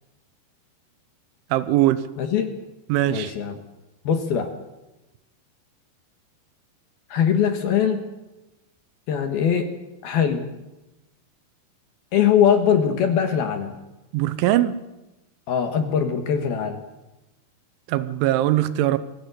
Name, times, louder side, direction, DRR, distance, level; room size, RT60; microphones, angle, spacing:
voice 1, 1.5-2.0 2.9-3.3 14.1-14.8 17.9-19.0, right 14 dB, 80° right, 14 dB, 3.2 m, -21 dB
voice 2, 2.2-2.5 3.1-3.6 4.0-4.5 7.1-8.0 9.1-9.7 10.0-10.5 12.1-13.8 15.5-16.8, left 8 dB, 65° left, 6 dB, 2.9 m, -21 dB
22.5 x 16.0 x 8.2 m, 1.0 s
omnidirectional pair, 5.6 m